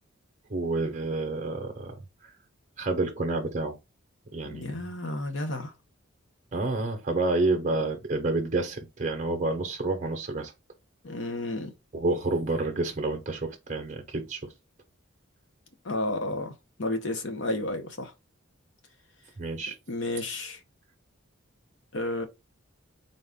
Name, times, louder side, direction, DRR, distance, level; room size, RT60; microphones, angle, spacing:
voice 1, 0.5-2.0 2.2-2.3 2.8-3.8 4.3-4.7 6.5-10.5 11.9-14.5 19.4-19.8, right 2 dB, 35° right, 0.8 m, -29 dB
voice 2, 4.4-5.7 11.0-11.7 15.8-16.5 16.8-18.1 19.9-20.6 21.9-22.2, left 1 dB, 60° left, 0.9 m, -31 dB
4.0 x 2.4 x 3.6 m
head